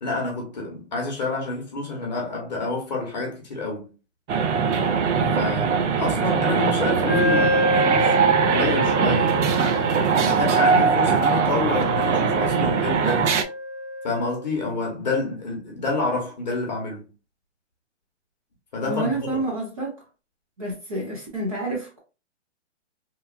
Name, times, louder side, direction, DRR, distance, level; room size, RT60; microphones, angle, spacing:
voice 1, 0.0-3.9 5.3-9.4 10.2-13.3 14.0-17.1 18.7-19.5, left 3 dB, 35° left, 0.9 m, -28 dB
sound 1, 4.3-13.4, right 6 dB, 75° right, 0.6 m, -21 dB
Wind instrument woodwind instrument, 7.1-14.4, equal, 15° left, 0.5 m, -28 dB
voice 2, 18.9-20.0 20.6-22.0, right 1 dB, 30° right, 0.8 m, -28 dB
2.9 x 2.4 x 2.4 m
hypercardioid pair, 180°, 36 cm